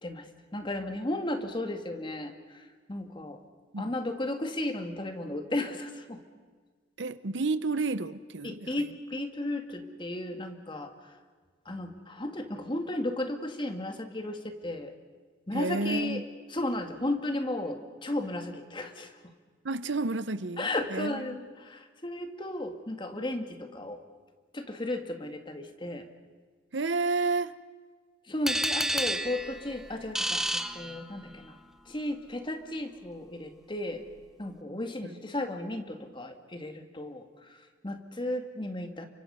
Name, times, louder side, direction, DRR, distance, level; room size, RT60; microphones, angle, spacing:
voice 1, 0.5-2.3 2.9-3.4 3.8-6.2 8.4-10.9 11.7-14.9 15.5-16.2 16.5-19.1 20.6-24.0 24.5-26.1 28.3-30.4 30.7-31.6 31.9-34.0 34.4-37.2 37.8-39.1, left 1 dB, 25° left, 6 dB, 2.0 m, -34 dB
voice 2, 7.0-8.9 15.5-16.2 19.6-21.4 26.7-27.5 35.0-35.2, right 3 dB, 70° right, 15 dB, 0.9 m, -31 dB
sound 1, 28.5-31.5, right 1 dB, 5° right, 0.8 m, -31 dB
29.5 x 24.5 x 5.6 m, 1.5 s
head